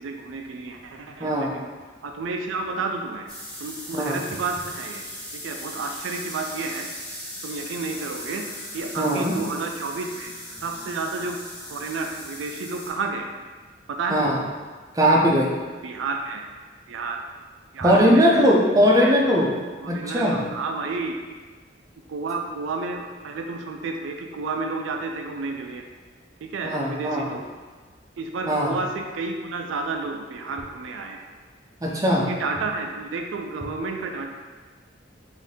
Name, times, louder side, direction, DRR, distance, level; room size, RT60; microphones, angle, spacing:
voice 1, 0.0-1.7 2.0-3.3 3.6-5.0 5.3-6.9 7.4-8.5 8.7-10.3 10.6-11.4 11.7-13.3 13.9-14.5 15.8-16.5 16.9-17.2 17.7-18.4 19.0-19.2 19.8-21.2 22.1-25.8 26.4-27.4 28.2-31.2 32.3-34.3, right 3 dB, 80° right, 3 dB, 0.4 m, -31 dB
voice 2, 1.2-1.5 3.9-4.2 9.0-9.4 14.1-14.4 14.9-15.5 17.8-19.5 19.9-20.4 26.6-27.3 28.5-28.8 31.8-32.3, equal, 20° right, -3 dB, 0.5 m, -19 dB
sound 1, 3.3-12.9, equal, 5° left, 1.3 m, -38 dB
4.1 x 2.6 x 3.5 m, 1.4 s
head